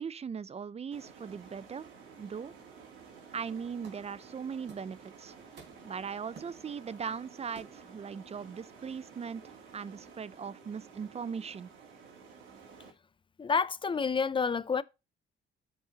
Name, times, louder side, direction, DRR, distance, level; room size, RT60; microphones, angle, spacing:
voice 1, 0.0-1.9 2.2-2.5 3.3-5.3 5.8-11.7, right 6 dB, 30° right, 0.5 m, -39 dB
sound 1, 0.9-12.9, right 5 dB, 80° right, 2.9 m, -53 dB
sound 2, 3.8-4.2 4.7-5.0 5.3-6.0 6.3-7.0 7.5-8.0, right 5 dB, 60° right, 3.5 m, -53 dB
voice 2, 13.4-14.8, left 5 dB, 25° left, 0.4 m, -29 dB
13.5 x 5.4 x 2.9 m
cardioid pair, 90°, 20 cm